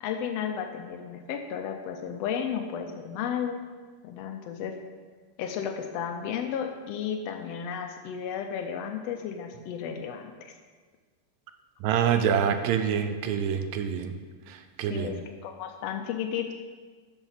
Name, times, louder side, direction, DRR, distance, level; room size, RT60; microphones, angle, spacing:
voice 1, 0.0-3.6 4.0-4.8 5.4-10.5 14.8-16.5, left 8 dB, 85° left, 5 dB, 1.4 m, -33 dB
voice 2, 11.8-14.2 14.5-15.2, right 8 dB, 75° right, 8 dB, 1.7 m, -26 dB
11.0 x 7.1 x 4.0 m, 1.5 s
omnidirectional pair, 3.6 m